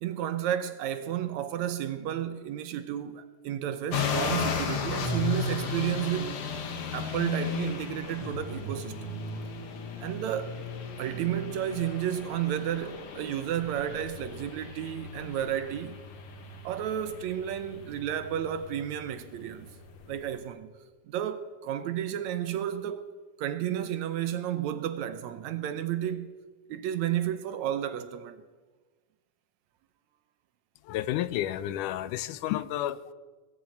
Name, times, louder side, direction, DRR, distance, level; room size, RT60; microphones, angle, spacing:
voice 1, 0.0-6.4 6.9-9.2 10.0-10.6 11.0-16.0 16.6-19.7 20.1-20.7 21.1-23.1 23.4-26.3 26.7-28.4, right 10 dB, 75° right, 1.9 m, -32 dB
sound 1, 3.9-20.4, left 5 dB, 50° left, 2.0 m, -35 dB
voice 2, 30.8-33.1, left 13 dB, 85° left, 2.1 m, -31 dB
20.0 x 7.2 x 8.9 m
omnidirectional pair, 3.6 m